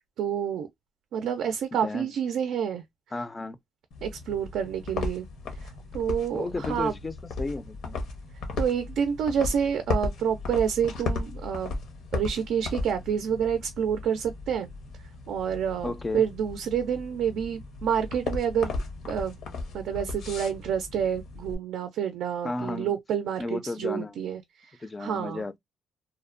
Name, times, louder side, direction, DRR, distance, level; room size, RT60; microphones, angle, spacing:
voice 1, 0.2-0.7 1.1-2.8 4.0-5.3 5.9-6.9 8.6-11.7 12.1-14.7 15.3-18.7 19.1-19.4 19.7-25.4, right 8 dB, 80° right, 0.4 m, -28 dB
voice 2, 3.1-3.6 6.3-8.0 15.8-16.2 22.4-23.0 23.4-24.1 24.8-25.6, left 2 dB, 25° left, 0.4 m, -33 dB
sound 1, 3.9-21.6, left 3 dB, 80° left, 0.7 m, -36 dB
2.8 x 2.1 x 2.4 m
cardioid pair, 90°, 0 cm